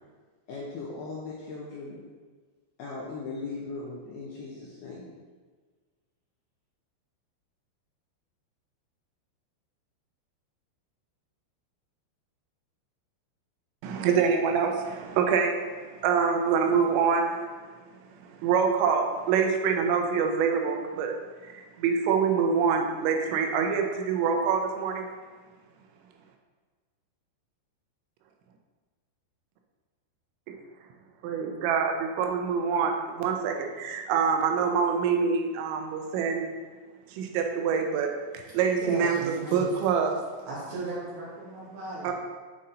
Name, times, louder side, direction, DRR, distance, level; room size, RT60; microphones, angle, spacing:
voice 1, 0.5-2.0 2.8-5.1, left 3 dB, 80° left, -4 dB, 2.2 m, -38 dB
voice 2, 13.8-15.7 16.0-17.5 18.3-21.1 21.4-25.1 31.2-36.5 37.1-40.1 42.0-42.1, right 6 dB, 90° right, 3 dB, 3.0 m, -25 dB
voice 3, 38.8-39.7 40.5-42.1, right 2 dB, 65° right, -6 dB, 3.1 m, -36 dB
8.3 x 3.8 x 4.1 m, 1.4 s
omnidirectional pair, 5.2 m